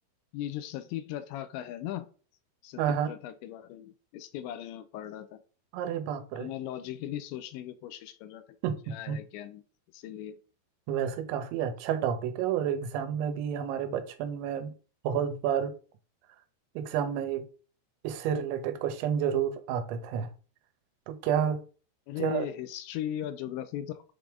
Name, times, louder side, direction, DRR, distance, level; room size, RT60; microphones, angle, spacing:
voice 1, 0.3-2.1 2.6-2.8 3.1-5.4 6.3-8.4 8.9-9.6 9.9-10.4 22.1-24.0, left 12 dB, 85° left, 2.9 m, -38 dB
voice 2, 2.8-3.1 5.7-6.5 8.6-9.2 10.9-14.7 15.0-15.7 16.8-17.5 18.0-20.3 21.1-21.6 22.2-22.5, right 8 dB, 90° right, 3.1 m, -30 dB
7.7 x 3.4 x 3.6 m
omnidirectional pair, 5.2 m